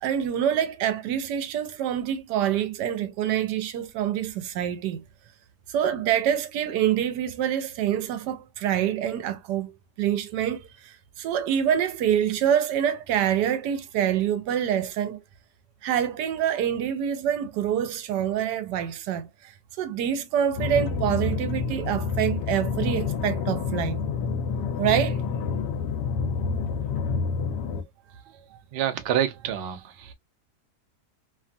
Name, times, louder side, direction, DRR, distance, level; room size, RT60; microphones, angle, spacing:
voice 1, 0.0-5.0 5.7-9.7 10.0-15.2 15.8-19.5 19.8-24.0 24.8-25.2, right 9 dB, 85° right, 1.2 m, -26 dB
sound 1, 20.6-27.8, left 5 dB, 85° left, 1.2 m, -28 dB
voice 2, 28.7-30.1, right 10 dB, 70° right, 0.5 m, -27 dB
3.0 x 2.3 x 2.5 m
omnidirectional pair, 1.8 m